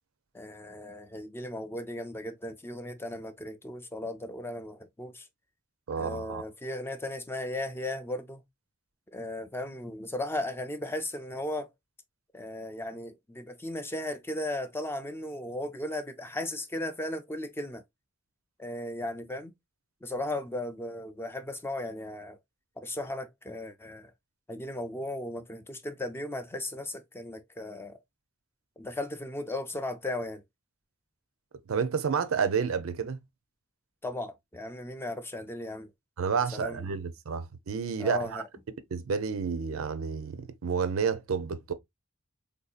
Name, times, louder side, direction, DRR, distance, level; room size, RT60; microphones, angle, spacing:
voice 1, 0.3-5.3 6.0-8.4 9.1-11.7 12.3-17.8 18.6-19.5 20.0-22.4 22.8-24.1 24.5-28.0 28.8-30.4 34.0-35.9 36.5-36.9 38.0-38.4, left 1 dB, 10° left, 0.4 m, -36 dB
voice 2, 5.9-6.4 31.7-33.2 36.2-38.4 38.9-41.7, right 6 dB, 85° right, 0.5 m, -30 dB
3.6 x 2.6 x 2.3 m
head